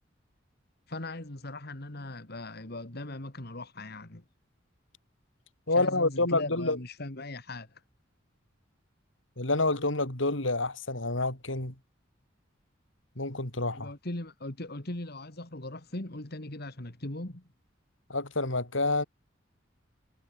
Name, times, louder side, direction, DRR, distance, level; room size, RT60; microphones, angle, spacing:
voice 1, 0.9-4.2 5.8-7.8 13.7-17.5, left 2 dB, 55° left, 2.5 m, -39 dB
voice 2, 5.7-6.8 9.4-11.7 13.2-13.9 18.1-19.0, left 2 dB, 80° left, 4.8 m, -28 dB
head